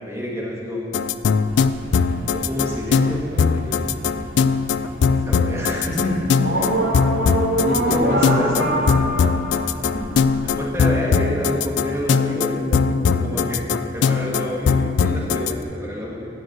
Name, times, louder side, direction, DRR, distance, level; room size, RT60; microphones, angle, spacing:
voice 1, 0.1-0.9 2.5-3.8 5.1-5.9 7.9-8.7 10.4-12.6 13.2-13.6 13.9-16.3, equal, 15° right, -4 dB, 1.3 m, -28 dB
sound 1, 0.9-15.5, left 5 dB, 65° left, 0.3 m, -20 dB
sound 2, 1.5-10.5, right 1 dB, 65° right, 2.1 m, -27 dB
voice 2, 5.8-6.2 6.5-6.6 7.6-8.2 8.5-9.2 9.9-10.2 12.6-13.5, left 1 dB, 40° left, -4 dB, 1.7 m, -28 dB
10.0 x 5.1 x 7.8 m, 2.6 s
head